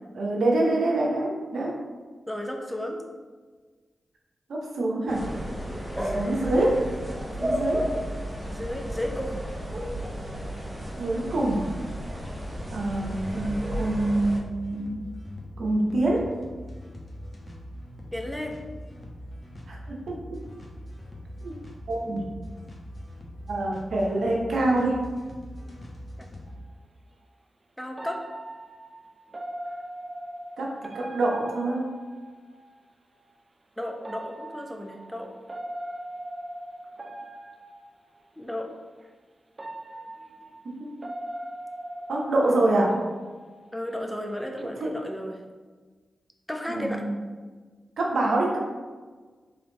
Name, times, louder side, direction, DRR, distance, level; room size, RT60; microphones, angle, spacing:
voice 1, 0.1-1.8 4.5-5.3 6.1-6.8 7.4-7.9 11.0-11.8 12.7-15.0 15.6-16.3 19.7-20.4 21.4-21.5 21.9-22.3 23.5-25.0 30.6-31.8 40.6-40.9 42.1-43.0 44.8-44.9 46.7-47.1 48.0-48.6, right 2 dB, 75° right, -1 dB, 0.8 m, -25 dB
voice 2, 2.3-3.0 5.9-6.3 8.5-9.4 18.1-18.6 27.8-28.2 33.8-35.3 38.4-38.7 43.7-45.4 46.5-47.0, left 1 dB, 5° left, 2 dB, 0.7 m, -33 dB
sound 1, 5.1-14.4, equal, 20° right, 0.9 m, -33 dB
sound 2, 12.0-26.6, equal, 35° left, 1.1 m, -42 dB
sound 3, 26.5-26.6 28.0-32.7 34.0-38.2 39.0-39.1 39.6-44.0 44.3-44.6, right 1 dB, 40° right, 0.4 m, -40 dB
3.5 x 3.4 x 3.9 m, 1.4 s
supercardioid pair, 40°, 0 cm